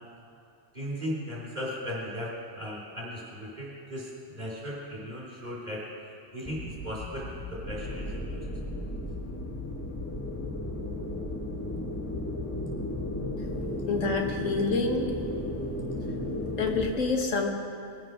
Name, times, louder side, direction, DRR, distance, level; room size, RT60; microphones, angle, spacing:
voice 1, 0.7-5.8 6.3-8.5, equal, 35° right, -5 dB, 4.6 m, -37 dB
sound 1, 6.5-13.3, left 3 dB, 5° right, 1.5 m, -41 dB
sound 2, 7.6-16.9, left 1 dB, 10° left, 1.4 m, -34 dB
voice 2, 13.9-15.1 16.6-17.5, left 4 dB, 85° left, 3 dB, 1.7 m, -27 dB
21.5 x 7.9 x 6.2 m, 2.6 s
omnidirectional pair, 1.3 m